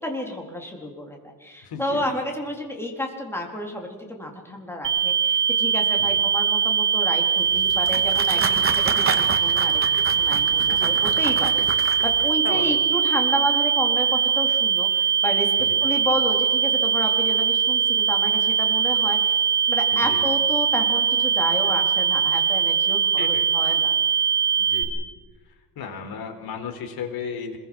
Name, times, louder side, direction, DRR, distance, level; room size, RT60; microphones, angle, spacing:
voice 1, 0.0-9.8 10.2-15.5 15.8-19.4 19.7-23.9, equal, 5° left, 2 dB, 4.1 m, -31 dB
voice 2, 1.6-2.1 6.0-6.2 10.7-10.9 12.4-12.8 15.6-15.8 19.9-20.2 23.2-23.5 24.6-25.0 25.8-27.6, left 6 dB, 65° left, 5 dB, 4.3 m, -35 dB
sound 1, 4.8-24.8, right 7 dB, 50° right, 6.9 m, -21 dB
sound 2, 7.4-12.3, right 5 dB, 35° right, 2.1 m, -31 dB
26.5 x 22.0 x 6.3 m, 1.3 s
cardioid pair, 150°, 40 cm